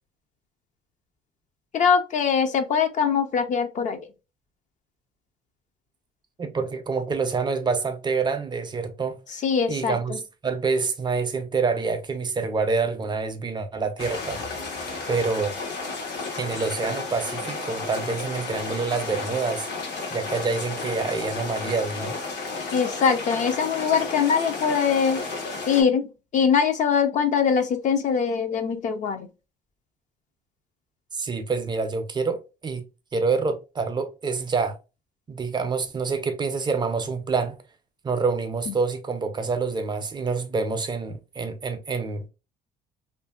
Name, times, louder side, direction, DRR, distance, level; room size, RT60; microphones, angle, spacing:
voice 1, 1.7-4.0 9.4-10.2 22.7-25.2 25.7-29.3 38.7-38.8, left 6 dB, 45° left, 0.5 m, -22 dB
voice 2, 6.4-9.2 9.7-10.1 10.4-14.4 15.1-15.6 16.4-19.7 20.1-22.2 31.1-32.8 33.1-34.8 35.3-37.6 38.0-42.3, right 4 dB, 25° right, 0.4 m, -27 dB
sound 1, 14.0-25.8, left 3 dB, 80° left, 1.0 m, -33 dB
2.8 x 2.5 x 2.2 m
cardioid pair, 110°, 17 cm